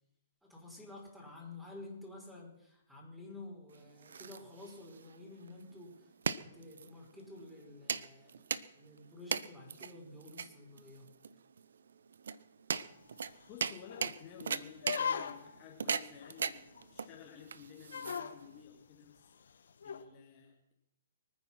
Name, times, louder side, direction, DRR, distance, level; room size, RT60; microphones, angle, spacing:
voice 1, 0.4-11.1, left 2 dB, 5° right, -1 dB, 5.1 m, -51 dB
sound 1, 3.7-18.6, right 6 dB, 60° right, 0.7 m, -40 dB
sound 2, 12.8-12.9 13.3-13.4 13.9-14.2 14.8-15.6 16.2-16.3 16.8-16.9 17.1-17.2 17.9-18.4 19.8-20.0, left 7 dB, 60° left, 1.4 m, -38 dB
voice 2, 13.5-19.5 19.8-20.7, left 9 dB, 30° left, 0 dB, 2.5 m, -53 dB
24.5 x 9.6 x 5.9 m, 0.81 s
figure-of-eight pair, 120°, 0 cm